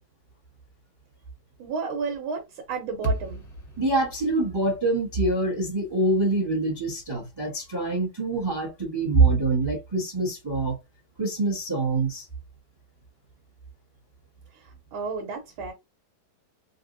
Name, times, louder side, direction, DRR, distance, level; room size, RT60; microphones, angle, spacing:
voice 1, 1.6-3.4 14.5-15.7, right 5 dB, 75° right, 1.6 m, -32 dB
sound 1, 3.0-7.3, right 1 dB, 10° left, 1.0 m, -36 dB
voice 2, 3.8-10.8 11.2-12.3, right 3 dB, 20° right, 0.7 m, -25 dB
3.9 x 2.5 x 2.6 m
omnidirectional pair, 2.3 m